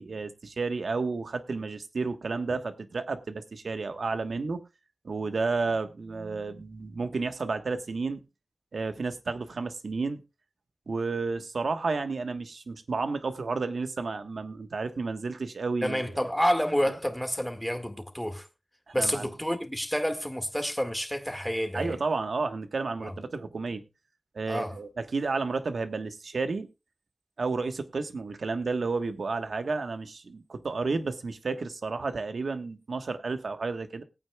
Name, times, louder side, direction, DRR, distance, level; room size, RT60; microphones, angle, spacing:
voice 1, 0.0-4.6 5.0-8.2 8.7-10.2 10.9-16.1 18.9-19.3 21.7-23.8 24.3-26.7 27.4-34.0, right 4 dB, 80° right, 1.3 m, -31 dB
voice 2, 15.8-18.5 18.9-22.0 23.0-23.1 24.5-24.7, equal, 5° left, 1.8 m, -29 dB
21.0 x 8.9 x 2.3 m
wide cardioid pair, 80°, 0 cm